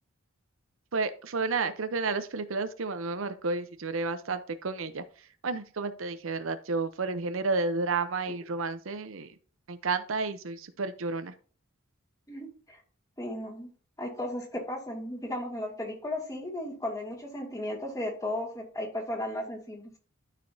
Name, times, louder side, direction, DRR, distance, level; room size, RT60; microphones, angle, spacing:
voice 1, 0.9-5.0 5.4-9.3 9.7-11.3, right 4 dB, 70° right, 10 dB, 0.7 m, -31 dB
voice 2, 12.3-12.8 13.2-13.7 14.0-19.9, left 1 dB, 15° left, 1 dB, 2.1 m, -35 dB
12.5 x 5.0 x 2.7 m, 0.43 s
head